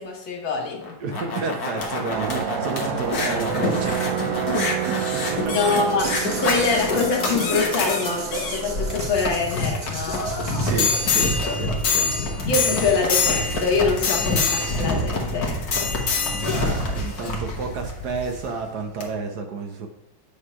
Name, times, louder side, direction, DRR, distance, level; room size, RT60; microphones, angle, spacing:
voice 1, 0.0-0.8 5.4-6.1 6.4-10.2 12.5-15.9, left 4 dB, 85° left, 0 dB, 2.0 m, -24 dB
sound 1, 0.8-18.4 19.0-19.1, left 3 dB, 55° left, 1.6 m, -25 dB
voice 2, 1.0-4.4 4.8-5.8 10.6-12.3 16.5-19.9, right 4 dB, 60° right, 4 dB, 1.3 m, -31 dB
sound 2, 2.1-9.1, right 9 dB, 90° right, 0.7 m, -29 dB
sound 3, 6.0-11.7, right 2 dB, 40° right, 1.7 m, -37 dB
8.6 x 3.3 x 5.5 m, 0.80 s
omnidirectional pair, 2.1 m